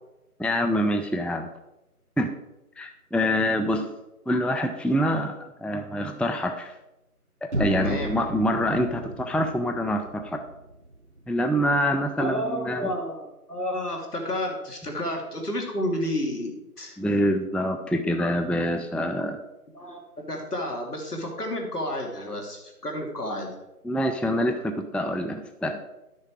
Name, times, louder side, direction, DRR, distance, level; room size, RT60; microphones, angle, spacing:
voice 1, 0.4-1.5 2.2-2.3 2.8-3.9 4.3-6.8 7.4-10.4 11.3-12.9 17.0-19.4 23.8-25.8, equal, 5° left, 5 dB, 0.4 m, -25 dB
sound 1, 7.5-11.5, right 2 dB, 50° right, 0.7 m, -34 dB
voice 2, 7.7-8.1 12.2-17.0 19.7-20.0 20.3-23.5, left 1 dB, 75° left, 1 dB, 2.8 m, -31 dB
11.0 x 6.5 x 4.8 m, 0.97 s
figure-of-eight pair, 170°, 46 cm